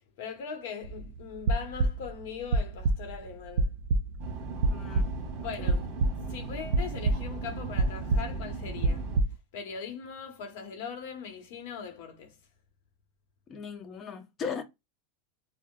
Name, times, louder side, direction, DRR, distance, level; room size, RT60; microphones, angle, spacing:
voice 1, 0.2-3.7 5.4-5.9 6.3-9.1 9.5-12.4, left 6 dB, 75° left, 0.9 m, -40 dB
sound 1, 0.8-1.1 1.3-2.2 2.5-3.2 3.6-4.2 4.6-5.4 5.7-6.3 6.7-7.5 7.8-9.3, right 3 dB, 80° right, 0.3 m, -27 dB
sound 2, 4.2-9.2, right 3 dB, 50° right, 1.1 m, -38 dB
voice 2, 4.7-5.1 5.6-5.8 13.5-14.6, left 6 dB, 35° left, 0.8 m, -38 dB
4.6 x 2.0 x 2.3 m
supercardioid pair, 115°, 0 cm